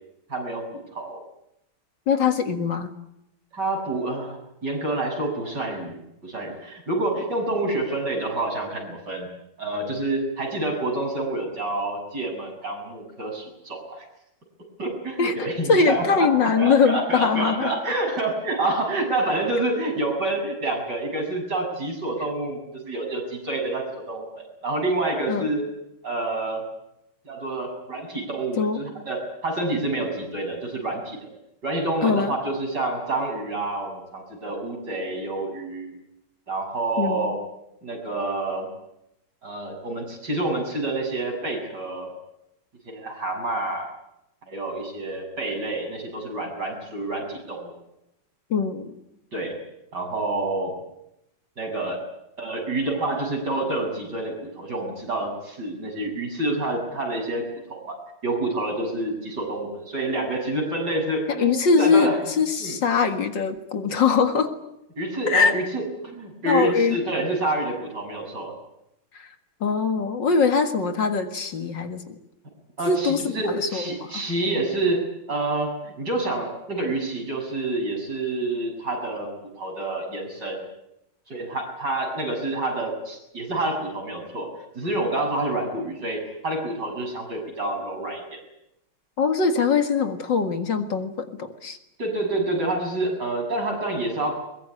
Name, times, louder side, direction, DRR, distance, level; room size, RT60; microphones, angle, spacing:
voice 1, 0.3-0.6 0.9-1.2 3.5-6.0 6.2-9.3 9.6-14.0 14.8-25.6 26.0-26.6 27.2-31.3 31.6-36.0 36.5-37.4 37.8-38.7 39.4-42.1 42.9-43.9 44.5-47.7 49.3-49.6 49.9-50.8 51.6-52.0 52.4-57.4 57.7-58.0 58.2-62.2 62.6-62.8 65.0-68.5 72.8-80.6 81.3-84.5 84.7-88.4 92.0-94.3, right 2 dB, 55° right, 2 dB, 7.7 m, -28 dB
voice 2, 2.1-2.9 15.2-15.4 15.7-17.7 25.3-25.5 28.6-28.8 32.0-32.3 37.0-37.3 48.5-48.9 61.3-64.5 65.3-65.5 66.5-67.0 69.1-69.3 69.6-72.1 72.9-74.2 89.2-91.8, left 5 dB, 65° left, 7 dB, 2.5 m, -22 dB
22.5 x 22.0 x 10.0 m, 0.84 s
omnidirectional pair, 2.2 m